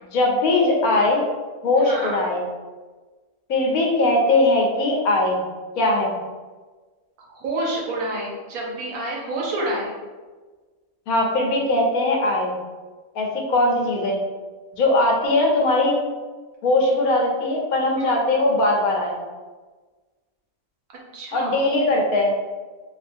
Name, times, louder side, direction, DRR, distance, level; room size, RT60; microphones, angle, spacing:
voice 1, 0.1-1.2 1.6-2.4 3.5-5.4 5.8-6.1 11.1-12.5 13.1-14.2 14.7-16.0 16.6-19.1 21.3-22.3, left 2 dB, 80° left, 0 dB, 1.1 m, -20 dB
voice 2, 1.8-2.1 7.3-9.9 18.0-18.2 21.1-21.6, right 1 dB, 80° right, -3 dB, 1.3 m, -28 dB
3.4 x 2.3 x 2.6 m, 1.3 s
omnidirectional pair, 1.5 m